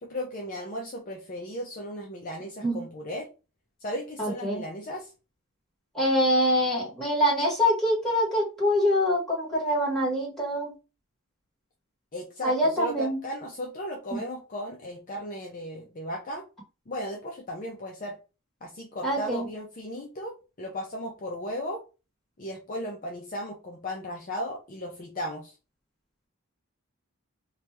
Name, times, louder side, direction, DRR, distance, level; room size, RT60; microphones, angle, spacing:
voice 1, 0.0-3.3 3.8-5.1 12.1-16.4 16.9-18.2 18.6-21.8 22.4-25.6, equal, 35° left, 0 dB, 0.5 m, -36 dB
voice 2, 4.2-4.6 5.9-10.7 12.4-13.2 14.1-14.2 19.0-19.5, equal, ahead, -7 dB, 1.5 m, -25 dB
2.8 x 2.3 x 3.2 m, 0.31 s
head